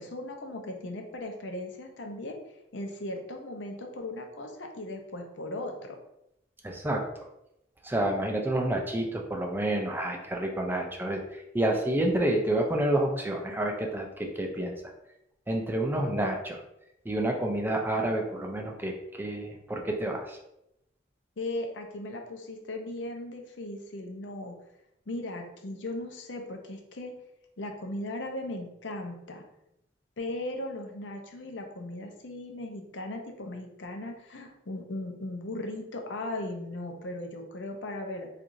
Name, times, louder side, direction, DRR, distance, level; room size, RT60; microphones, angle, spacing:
voice 1, 0.0-2.4 2.7-6.0 21.4-24.5 25.1-27.1 27.6-29.4 30.2-38.3, left 1 dB, 75° left, 3 dB, 0.6 m, -37 dB
voice 2, 6.6-7.0 7.8-14.7 15.5-16.6 17.0-20.4, right 1 dB, 10° right, 1 dB, 0.4 m, -29 dB
4.5 x 2.4 x 2.6 m, 0.83 s
head